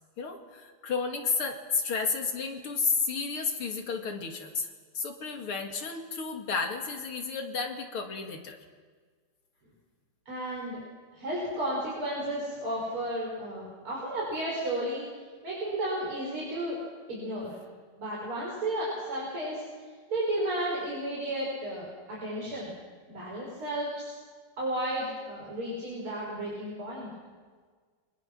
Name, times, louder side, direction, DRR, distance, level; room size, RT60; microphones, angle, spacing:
voice 1, 0.2-4.7 5.0-8.6, left 5 dB, 85° left, 3 dB, 3.3 m, -32 dB
voice 2, 10.3-10.8 11.1-15.0 15.4-16.8 17.1-17.6 18.0-19.6 20.1-22.7 23.1-24.2 24.6-27.1, right 1 dB, 85° right, -4 dB, 6.6 m, -33 dB
30.0 x 24.5 x 6.3 m, 1.5 s
omnidirectional pair, 2.3 m